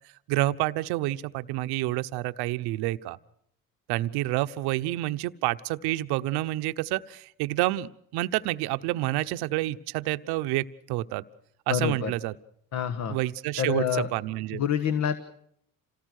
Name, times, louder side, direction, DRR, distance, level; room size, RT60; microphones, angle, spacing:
voice 1, 0.3-3.2 3.9-11.3 11.7-12.3 13.1-14.6, right 17 dB, 80° right, 11 dB, 1.0 m, -28 dB
voice 2, 11.7-12.1 12.7-13.2 13.6-14.1 14.5-15.2, left 8 dB, 45° left, 11 dB, 1.4 m, -27 dB
27.5 x 18.0 x 6.5 m, 0.70 s
cardioid pair, 110°, 38 cm